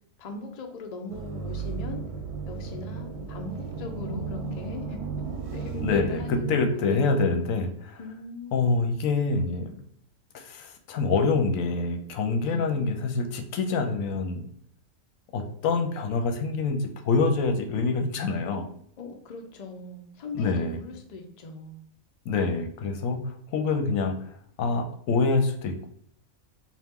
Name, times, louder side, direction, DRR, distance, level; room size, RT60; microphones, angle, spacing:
voice 1, 0.2-2.0 2.5-5.0 5.5-7.4 8.0-8.8 12.4-13.0 19.0-21.8, left 3 dB, 50° left, 3 dB, 0.5 m, -40 dB
sound 1, 1.1-6.7, right 4 dB, 60° right, 0.9 m, -34 dB
voice 2, 5.8-6.2 6.5-8.0 8.5-9.8 10.3-14.5 15.3-18.7 20.3-20.8 22.3-25.9, left 4 dB, 80° left, 5 dB, 1.0 m, -26 dB
4.3 x 2.4 x 3.5 m, 0.67 s
omnidirectional pair, 1.4 m